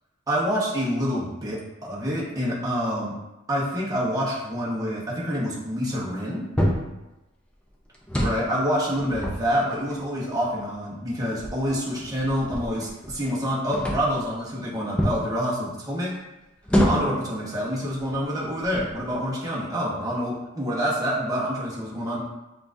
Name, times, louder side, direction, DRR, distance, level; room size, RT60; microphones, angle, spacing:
voice 1, 0.3-3.1 3.5-6.4 8.2-16.1 16.8-22.2, equal, 20° right, -5 dB, 0.9 m, -27 dB
sound 1, 6.6-7.0 7.9-8.5 8.9-10.0 10.7-10.8 11.4-13.4 13.7-14.2 15.0-15.3 16.7-17.2 18.0-18.1 18.6-19.1, equal, 5° left, 0.4 m, -26 dB
5.6 x 2.4 x 2.6 m, 1.0 s
head